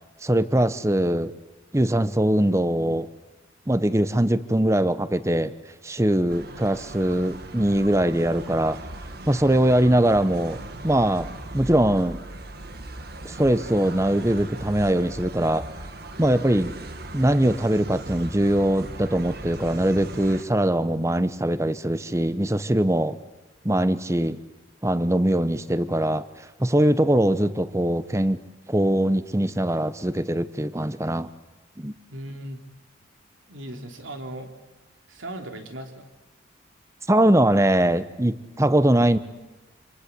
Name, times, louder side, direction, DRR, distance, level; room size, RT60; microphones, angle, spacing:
voice 1, 0.2-1.3 1.7-3.1 3.7-5.5 5.8-8.8 9.2-12.2 13.2-15.7 16.2-16.7 17.1-23.2 23.6-24.4 24.8-26.2 26.6-28.4 28.7-31.3 31.8-31.9 37.1-39.2, right 1 dB, 15° right, 14 dB, 0.9 m, -22 dB
sound 1, 6.3-20.4, right 2 dB, 55° right, 1.8 m, -39 dB
voice 2, 32.1-32.6 33.5-34.5 35.1-36.1, right 1 dB, 90° right, 5 dB, 3.4 m, -37 dB
26.5 x 26.5 x 8.4 m, 1.1 s
head